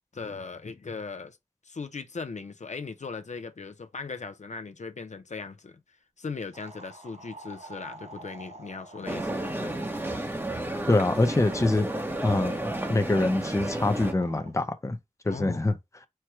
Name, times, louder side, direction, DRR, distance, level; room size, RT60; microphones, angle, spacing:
voice 1, 0.1-1.4 1.6-5.8 6.2-9.7 15.2-15.6, left 4 dB, 70° left, 0.6 m, -38 dB
sound 1, 6.5-10.5 11.9-13.1 13.6-14.5, right 2 dB, 60° right, 0.8 m, -47 dB
sound 2, 9.0-14.1, right 1 dB, 15° right, 0.9 m, -32 dB
voice 2, 10.9-11.9 12.2-15.0 15.2-15.8, left 2 dB, 25° left, 0.6 m, -25 dB
4.5 x 2.2 x 4.6 m
wide cardioid pair, 70°, 13 cm